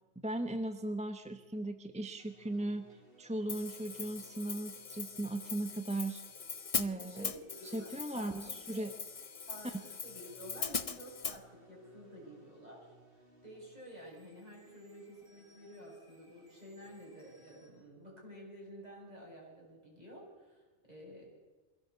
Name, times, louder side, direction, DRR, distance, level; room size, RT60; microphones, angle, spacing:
voice 1, 0.2-2.9 3.2-6.2 6.7-7.3 7.7-8.9, right 1 dB, 5° right, 8 dB, 0.8 m, -37 dB
sound 1, 2.2-17.7, right 1 dB, 50° right, 4.2 m, -63 dB
Hi-hat, 3.5-11.4, left 5 dB, 35° left, 0.7 m, -41 dB
voice 2, 6.9-8.9 9.5-12.9 13.4-21.2, equal, 35° right, -2 dB, 7.4 m, -51 dB
23.0 x 16.5 x 8.1 m, 1.2 s
omnidirectional pair, 1.2 m